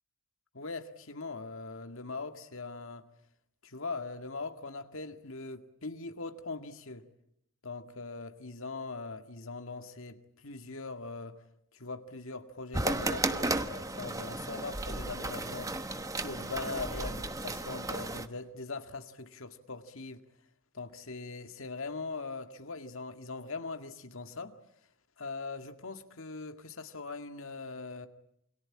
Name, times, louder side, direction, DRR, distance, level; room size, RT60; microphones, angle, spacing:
voice 1, 0.5-3.1 3.6-7.1 7.6-11.4 11.7-15.7 16.2-20.2 20.7-24.6 25.2-28.1, left 3 dB, 70° left, 2.0 m, -41 dB
sound 1, 12.7-18.3, right 2 dB, 15° right, 1.1 m, -34 dB
28.5 x 23.5 x 8.7 m
head